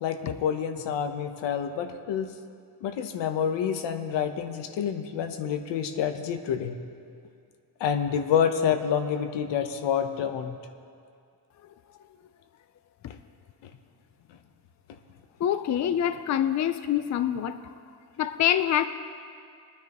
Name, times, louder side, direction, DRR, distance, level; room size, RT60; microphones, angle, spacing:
voice 1, 0.0-2.3 2.8-6.8 7.8-10.6 13.1-13.2, left 8 dB, 90° left, 7 dB, 1.0 m, -28 dB
voice 2, 15.4-17.6 18.2-18.8, left 10 dB, 45° left, 10 dB, 0.5 m, -25 dB
22.0 x 9.9 x 3.0 m, 2.3 s
cardioid pair, 120°, 42 cm